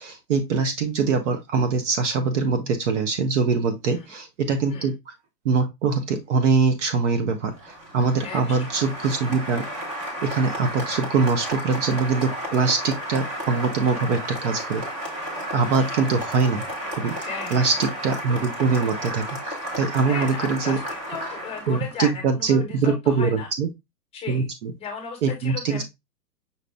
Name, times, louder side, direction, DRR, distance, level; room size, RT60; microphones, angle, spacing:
voice 1, 0.0-4.9 5.4-9.6 10.2-14.8 15.5-16.6 17.0-20.8 21.7-23.7 24.3-24.7 25.2-25.8, right 4 dB, 45° right, 7 dB, 0.9 m, -23 dB
Applause, 7.5-22.0, equal, 15° right, 0.8 m, -33 dB
voice 2, 8.2-8.5 14.0-14.1 17.2-17.7 20.1-23.5 24.1-24.5 24.8-25.8, left 6 dB, 10° left, 2 dB, 1.1 m, -35 dB
5.7 x 2.5 x 3.3 m, 0.20 s
hypercardioid pair, 145°, 50 cm